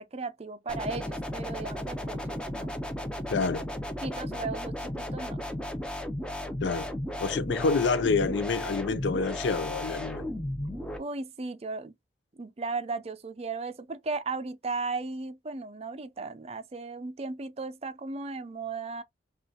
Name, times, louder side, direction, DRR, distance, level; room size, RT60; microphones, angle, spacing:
voice 1, 0.0-2.8 4.0-5.4 11.0-11.9 12.4-19.0, right 3 dB, 35° right, 0.5 m, -36 dB
sound 1, 0.7-11.0, left 1 dB, 5° left, 0.7 m, -35 dB
voice 2, 3.3-3.7 6.6-6.9 7.2-10.3, left 4 dB, 75° left, 0.5 m, -27 dB
5.4 x 2.4 x 2.7 m
head